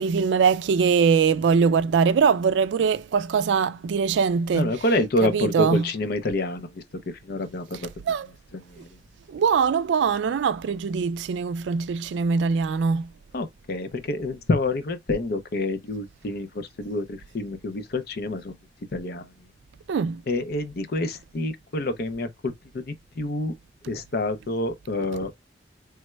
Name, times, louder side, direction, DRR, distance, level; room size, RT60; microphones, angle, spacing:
voice 1, 0.0-4.7 5.2-5.9 8.1-8.3 9.3-13.1 19.9-20.2, right 6 dB, 80° right, 0.3 m, -22 dB
voice 2, 4.5-6.7 7.2-7.9 8.5-8.6 13.3-18.5 18.9-19.2 20.3-22.8 23.2-23.5 23.9-25.3, left 2 dB, 60° left, 0.6 m, -27 dB
3.4 x 2.2 x 3.0 m
head